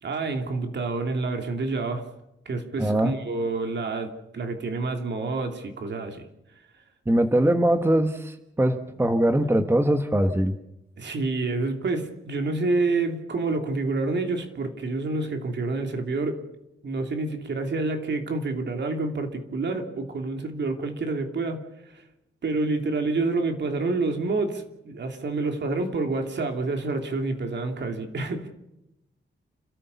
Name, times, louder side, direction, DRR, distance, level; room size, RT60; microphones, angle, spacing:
voice 1, 0.0-2.0 2.4-6.3 11.0-16.4 16.8-22.0 22.4-28.5, right 3 dB, 60° right, 5 dB, 2.9 m, -28 dB
voice 2, 2.8-3.1 7.1-10.5, right 1 dB, 10° right, 8 dB, 1.2 m, -22 dB
30.0 x 13.5 x 7.0 m, 0.88 s
wide cardioid pair, 120°, 20 cm